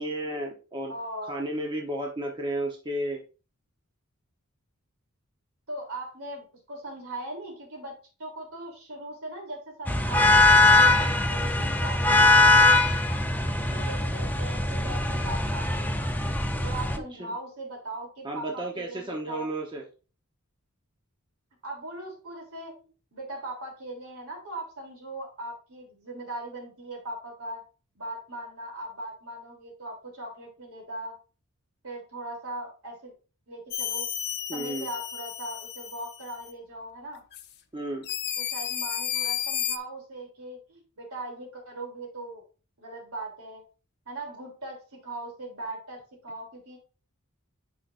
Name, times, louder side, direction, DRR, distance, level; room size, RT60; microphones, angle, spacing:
voice 1, 0.0-0.9 1.3-3.2 17.2-17.3 18.2-19.8 34.5-34.9 37.7-38.1, right 1 dB, 20° right, 0 dB, 1.0 m, -32 dB
voice 2, 0.9-1.4 5.7-10.5 11.0-12.7 13.4-16.0 16.6-19.5 21.6-22.7 23.1-27.6 27.9-31.1 31.8-33.1 33.5-34.1 34.5-37.2 38.4-42.4 42.8-43.6 44.0-46.8, right 1 dB, 70° right, 1 dB, 3.3 m, -39 dB
sound 1, 9.9-17.0, left 2 dB, 10° left, 0.6 m, -21 dB
sound 2, 33.7-36.5 37.3-37.5 38.0-39.8, left 9 dB, 50° left, 0.8 m, -32 dB
9.6 x 5.6 x 2.6 m, 0.34 s
head